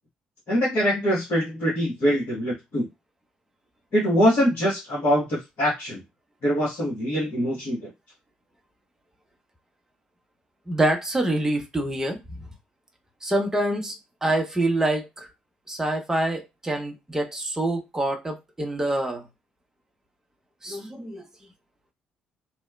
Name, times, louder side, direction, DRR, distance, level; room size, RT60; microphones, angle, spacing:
voice 1, 0.5-2.9 3.9-6.0 6.4-7.9, equal, 50° left, 1.1 m, -23 dB
voice 2, 10.7-12.2 13.2-15.3 15.7-19.3 20.6-21.3, right 1 dB, 10° right, 0.7 m, -26 dB
2.9 x 2.1 x 2.3 m
figure-of-eight pair, 45°, 4 cm